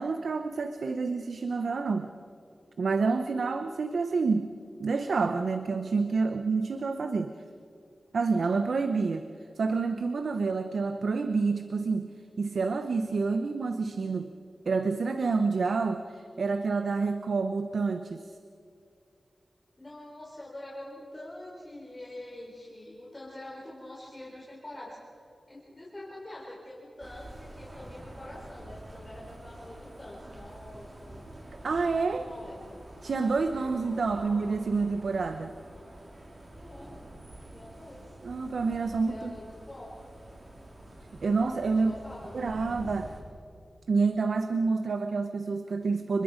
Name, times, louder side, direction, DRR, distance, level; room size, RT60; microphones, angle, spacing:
voice 1, 0.0-2.1 2.8-4.5 4.8-7.3 8.1-9.3 9.6-12.1 12.4-14.3 14.7-18.2 31.6-32.3 33.0-35.5 38.2-39.4 41.2-41.9 42.3-43.1 43.9-46.2, right 4 dB, 75° right, 8 dB, 0.9 m, -28 dB
voice 2, 19.8-25.0 25.5-31.2 31.9-32.7 34.1-34.2 36.5-36.9 37.5-38.1 39.0-40.0 41.7-42.8, left 1 dB, 25° left, -5 dB, 4.8 m, -45 dB
sound 1, 27.0-43.2, right 1 dB, 40° right, 4.1 m, -47 dB
29.5 x 21.0 x 5.2 m, 2.5 s
wide cardioid pair, 70°, 0 cm